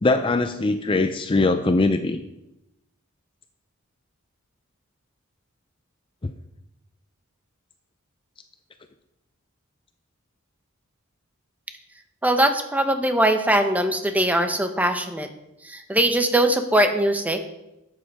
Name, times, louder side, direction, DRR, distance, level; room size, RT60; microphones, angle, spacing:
voice 1, 0.0-2.2, left 2 dB, 25° left, 8 dB, 0.5 m, -21 dB
voice 2, 12.2-15.3 15.6-17.6, right 1 dB, 5° right, 7 dB, 0.9 m, -21 dB
12.5 x 8.6 x 4.8 m, 0.90 s
head